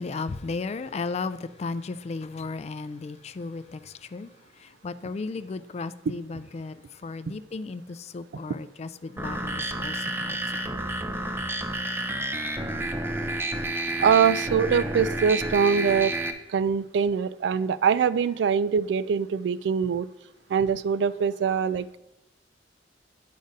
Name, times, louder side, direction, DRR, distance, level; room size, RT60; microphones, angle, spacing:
voice 1, 0.0-4.3 4.6-6.7 7.0-10.7, left 4 dB, 35° left, 14 dB, 0.3 m, -35 dB
sound 1, 9.2-16.3, right 2 dB, 15° right, 0.6 m, -30 dB
voice 2, 14.0-16.2 16.5-20.1 20.5-22.0, right 6 dB, 75° right, 17 dB, 0.3 m, -23 dB
9.3 x 3.9 x 5.2 m, 0.93 s
head